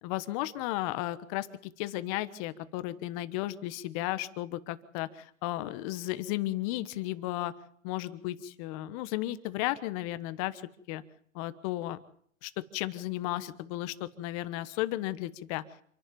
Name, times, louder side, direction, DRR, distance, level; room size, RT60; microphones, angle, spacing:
voice 1, 0.0-7.5 7.8-10.6 10.9-11.0 11.3-12.0 12.4-15.6, left 16 dB, 25° left, 13 dB, 1.2 m, -34 dB
27.5 x 11.0 x 9.1 m, 0.64 s
hypercardioid pair, 150°, 39 cm